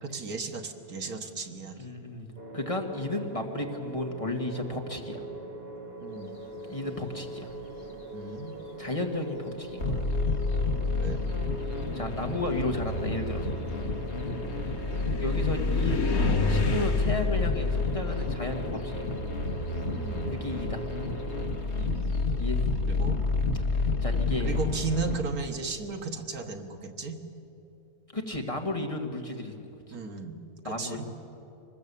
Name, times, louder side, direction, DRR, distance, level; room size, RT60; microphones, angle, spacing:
voice 1, 0.0-1.9 6.0-6.3 8.1-8.6 11.0-11.2 14.4-14.5 19.9-20.3 21.8-22.0 22.8-23.2 24.4-27.2 29.9-31.1, right 4 dB, 85° right, 5 dB, 1.9 m, -35 dB
voice 2, 1.7-5.3 6.7-7.5 8.8-10.0 11.9-13.5 15.2-19.1 20.3-20.8 22.4-22.8 23.8-24.6 28.1-29.5 30.6-31.1, left 2 dB, 25° left, 2 dB, 1.9 m, -33 dB
sound 1, 2.4-21.5, right 2 dB, 40° right, 2.0 m, -41 dB
sound 2, 7.5-8.1 9.0-9.1 9.7-19.6 19.9-22.5, left 3 dB, 80° left, 2.2 m, -36 dB
sound 3, 9.8-25.1, left 3 dB, 50° left, 1.9 m, -29 dB
24.5 x 20.0 x 8.4 m, 2.8 s
omnidirectional pair, 1.5 m